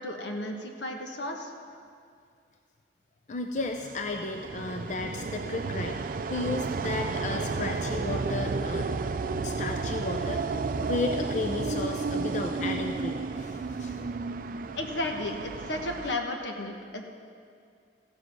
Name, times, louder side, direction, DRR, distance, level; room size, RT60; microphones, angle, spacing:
voice 1, 0.0-1.5 14.7-17.0, left 2 dB, 85° left, 3 dB, 1.3 m, -33 dB
voice 2, 3.3-8.9 9.4-14.0, left 3 dB, 40° left, 4 dB, 0.5 m, -34 dB
sound 1, 3.6-16.1, right 4 dB, 50° right, 0.4 m, -32 dB
15.0 x 7.5 x 6.2 m, 2.3 s
head